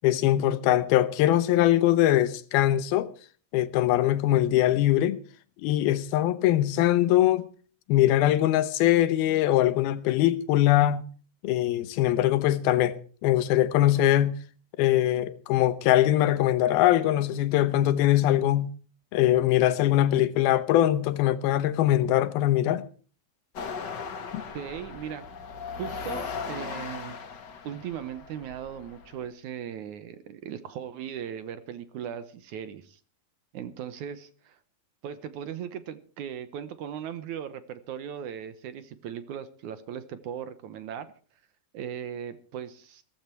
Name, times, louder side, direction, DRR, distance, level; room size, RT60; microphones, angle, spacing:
voice 1, 0.0-3.1 3.5-5.2 5.6-7.4 7.9-11.0 11.4-12.9 13.2-14.4 14.8-18.7 19.1-22.8 24.3-24.4, left 13 dB, 90° left, 2.8 m, -22 dB
sound 1, 23.5-29.3, left 5 dB, 45° left, 1.4 m, -38 dB
voice 2, 24.5-25.3 25.8-27.2 27.6-33.0 33.5-34.6 35.0-41.1 41.7-43.0, right 9 dB, 70° right, 2.1 m, -38 dB
16.0 x 14.5 x 4.5 m
omnidirectional pair, 4.2 m